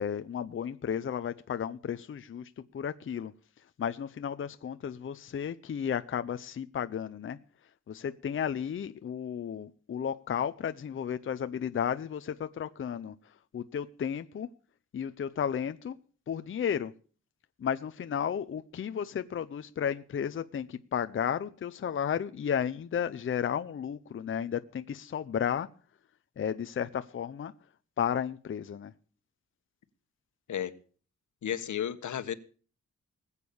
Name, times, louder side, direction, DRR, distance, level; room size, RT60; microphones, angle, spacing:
voice 1, 0.0-3.3 3.6-7.4 7.9-14.5 14.9-16.0 16.3-16.9 17.6-25.7 26.4-27.5 28.0-28.9, left 8 dB, 45° left, 0.6 m, -33 dB
voice 2, 31.4-32.3, left 9 dB, 85° left, 1.4 m, -33 dB
20.0 x 8.3 x 7.0 m
wide cardioid pair, 175°, 29 cm